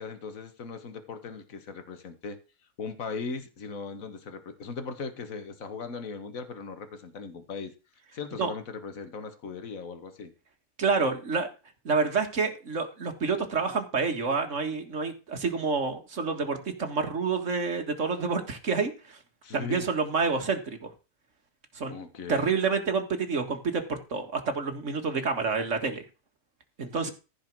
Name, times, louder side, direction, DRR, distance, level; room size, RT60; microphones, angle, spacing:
voice 1, 0.0-2.4 2.8-7.7 8.1-10.3 19.4-19.9 21.9-22.5 27.0-27.1, left 4 dB, 60° left, 9 dB, 1.8 m, -38 dB
voice 2, 10.8-11.5 11.9-19.2 19.5-20.9 21.8-22.0 22.3-26.0 26.8-27.1, right 4 dB, 50° right, 5 dB, 2.1 m, -28 dB
14.5 x 5.2 x 6.1 m, 0.32 s
omnidirectional pair, 1.7 m